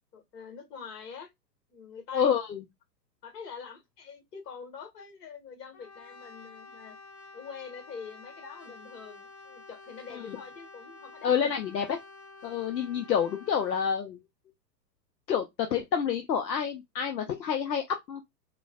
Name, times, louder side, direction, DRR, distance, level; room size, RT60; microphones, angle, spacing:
voice 1, 0.1-1.3 1.7-2.3 3.2-6.9 7.3-11.4, left 6 dB, 70° left, 1.6 m, -45 dB
voice 2, 2.1-2.6 10.3-10.4 11.2-12.0 12.4-14.2 15.3-18.2, left 7 dB, 85° left, 0.7 m, -28 dB
Brass instrument, 5.7-13.9, left 3 dB, 50° left, 1.4 m, -50 dB
3.9 x 2.2 x 2.2 m
hypercardioid pair, 105°, 50 cm